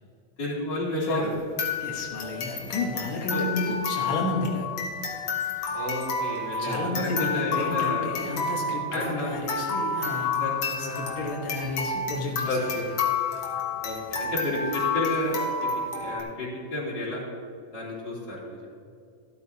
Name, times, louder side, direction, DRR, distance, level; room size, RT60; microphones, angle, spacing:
voice 1, 0.4-1.3 3.3-3.4 5.7-8.1 8.9-9.6 10.4-11.1 12.4-12.9 13.8-17.2 17.7-18.7, left 1 dB, 30° left, -6 dB, 3.2 m, -31 dB
sound 1, 1.0-16.2, left 5 dB, 60° left, 1.6 m, -30 dB
voice 2, 1.8-4.7 6.6-10.3 10.8-12.8, left 2 dB, 80° left, -1 dB, 1.1 m, -31 dB
13.5 x 12.5 x 2.8 m, 2.3 s
omnidirectional pair, 4.2 m